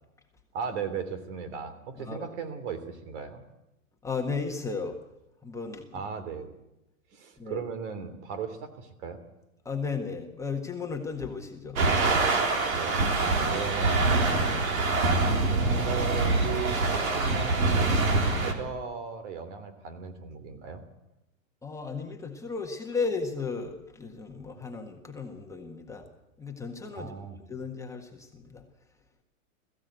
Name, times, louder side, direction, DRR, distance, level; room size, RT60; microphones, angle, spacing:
voice 1, 0.5-3.4 5.9-6.5 7.1-9.2 12.7-14.6 14.9-20.8 26.9-27.4, right 6 dB, 55° right, 11 dB, 3.3 m, -37 dB
voice 2, 4.0-4.9 5.4-6.0 7.4-7.6 9.6-11.8 21.6-26.1 26.4-28.6, left 4 dB, 5° left, 1 dB, 1.6 m, -35 dB
sound 1, 11.8-18.5, right 3 dB, 85° right, 3.8 m, -25 dB
21.5 x 15.0 x 8.1 m, 0.93 s
hypercardioid pair, 140°, 41 cm